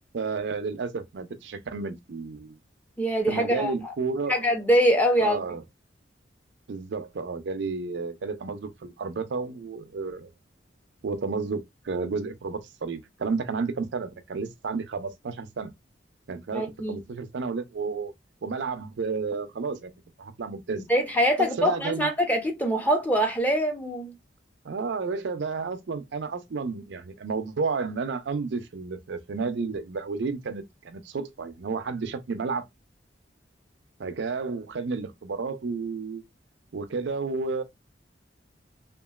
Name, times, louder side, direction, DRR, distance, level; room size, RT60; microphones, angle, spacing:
voice 1, 0.1-2.6 3.3-4.4 5.2-5.6 6.7-10.3 11.0-15.7 16.3-18.1 18.4-19.9 20.2-20.8 21.4-22.1 24.6-32.7 34.0-36.2 36.7-37.6, right 4 dB, 75° right, 0.5 m, -31 dB
voice 2, 3.0-3.7 4.3-5.4 16.5-17.0 20.9-24.1, equal, 10° left, 0.6 m, -23 dB
2.9 x 2.4 x 2.3 m
head